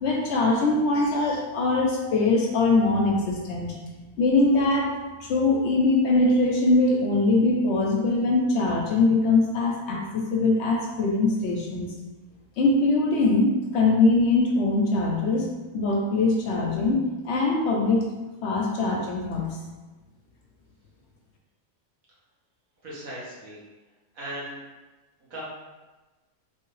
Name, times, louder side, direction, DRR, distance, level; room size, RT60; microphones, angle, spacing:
voice 1, 0.0-3.8 4.2-4.9 5.2-11.9 12.6-15.5 15.7-18.1 18.4-19.6, left 2 dB, 65° left, -1 dB, 0.8 m, -22 dB
voice 2, 22.8-23.6 24.1-24.6 25.2-25.4, right 1 dB, 90° right, -7 dB, 1.6 m, -37 dB
3.3 x 2.7 x 3.0 m, 1.2 s
omnidirectional pair, 1.4 m